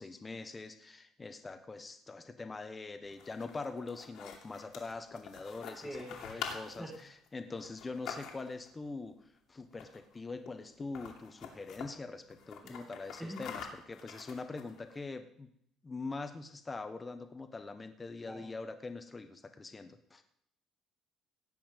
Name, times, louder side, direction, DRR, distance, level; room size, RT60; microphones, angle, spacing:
voice 1, 0.0-6.0 6.2-15.5 15.8-20.2, left 3 dB, 20° left, 8 dB, 1.2 m, -43 dB
sound 1, 3.0-8.7 9.7-10.2 10.5-10.6 10.8-11.9 12.3-15.0, left 7 dB, 65° left, 2.7 m, -46 dB
voice 2, 5.8-6.5 6.8-7.0 12.6-12.9 13.2-13.5 18.3-18.5, equal, 5° right, -2 dB, 2.1 m, -44 dB
17.0 x 5.8 x 9.1 m, 0.69 s
cardioid pair, 145°, 0 cm